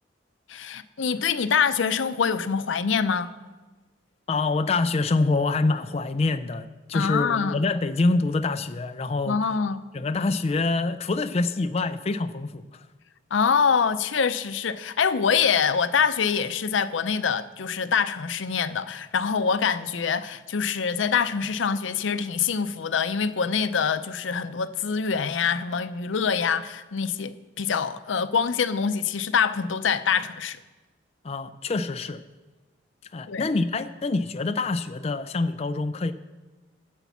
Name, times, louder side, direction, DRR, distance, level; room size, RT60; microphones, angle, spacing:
voice 1, 0.5-3.3 6.9-7.6 9.3-9.8 13.3-30.6 33.3-33.5, left 6 dB, 85° left, 0.6 m, -25 dB
voice 2, 4.3-9.4 9.9-12.9 31.2-32.2 33.0-36.1, left 3 dB, 35° left, 0.4 m, -26 dB
10.0 x 8.0 x 7.2 m
head